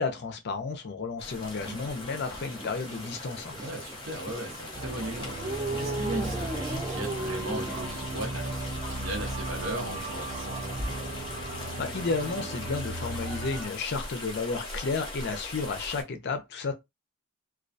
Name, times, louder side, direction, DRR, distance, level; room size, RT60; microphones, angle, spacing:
voice 1, 0.0-3.6 11.8-16.7, left 4 dB, 50° left, 0.5 m, -32 dB
sound 1, 1.2-16.0, left 2 dB, 20° left, 0.8 m, -41 dB
sound 2, 1.4-7.9, right 2 dB, 15° right, 0.3 m, -38 dB
voice 2, 3.6-10.6, right 1 dB, 60° right, 0.9 m, -37 dB
sound 3, 4.7-13.6, right 2 dB, 35° right, 1.0 m, -36 dB
2.3 x 2.2 x 2.5 m
head